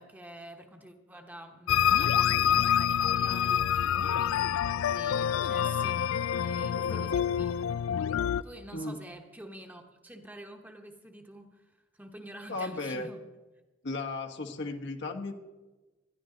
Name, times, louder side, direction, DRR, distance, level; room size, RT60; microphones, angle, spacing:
voice 1, 0.0-7.7 8.4-13.2, right 1 dB, 10° right, 3 dB, 1.1 m, -48 dB
sound 1, 1.7-8.4, left 9 dB, 85° left, 0.4 m, -27 dB
voice 2, 12.5-13.1 13.8-15.3, left 2 dB, 60° left, 3 dB, 1.2 m, -35 dB
19.5 x 12.0 x 3.9 m, 1.2 s
head